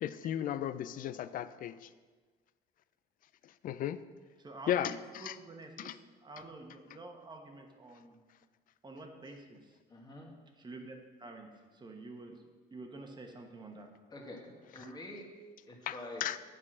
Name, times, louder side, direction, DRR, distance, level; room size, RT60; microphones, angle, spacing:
voice 1, 0.0-1.9 3.6-4.0 4.7-5.4 5.8-6.0 15.9-16.4, left 11 dB, 55° left, 14 dB, 0.4 m, -35 dB
voice 2, 4.4-8.2 8.8-9.8 10.6-11.5 11.7-12.4 12.7-13.9, right 2 dB, 25° right, 3 dB, 1.2 m, -48 dB
voice 3, 9.9-10.3 14.1-15.2 15.7-16.3, left 1 dB, 25° left, 0 dB, 1.7 m, -46 dB
8.5 x 4.8 x 6.0 m, 1.4 s
cardioid pair, 110°, 17 cm